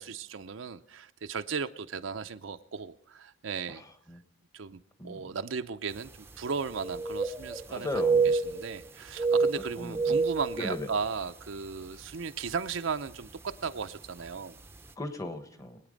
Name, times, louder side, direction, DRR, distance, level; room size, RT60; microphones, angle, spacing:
voice 1, 0.0-3.8 4.5-7.9 8.2-14.6, right 5 dB, 75° right, 8 dB, 0.6 m, -36 dB
sound 1, 6.0-6.1 6.4-7.7 7.9-8.8 9.1-11.3 11.7-11.8 12.5-12.8 13.8-13.9 14.3-14.4, right 4 dB, 10° right, 0.7 m, -28 dB
voice 2, 7.7-8.3 9.8-10.2 10.6-10.9 15.0-15.8, left 2 dB, 15° left, 8 dB, 1.2 m, -36 dB
22.5 x 9.1 x 5.2 m, 0.70 s
head